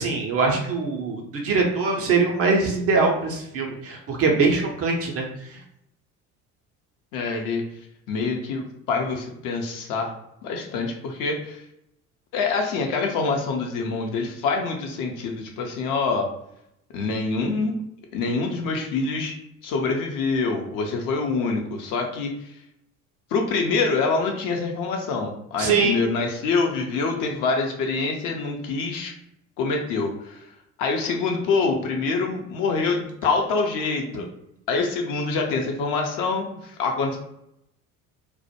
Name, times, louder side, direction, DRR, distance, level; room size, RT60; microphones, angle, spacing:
voice 1, 0.0-5.3 25.6-26.0, right 4 dB, 35° right, 1 dB, 0.5 m, -22 dB
voice 2, 7.1-7.6 8.1-10.1 10.4-11.6 12.3-16.3 16.9-17.7 18.1-19.3 19.6-22.6 23.3-29.1 29.6-30.5 30.8-34.3 34.7-37.2, left 4 dB, 45° left, 2 dB, 0.6 m, -25 dB
2.2 x 2.0 x 2.8 m, 0.76 s
figure-of-eight pair, 60°, 45 cm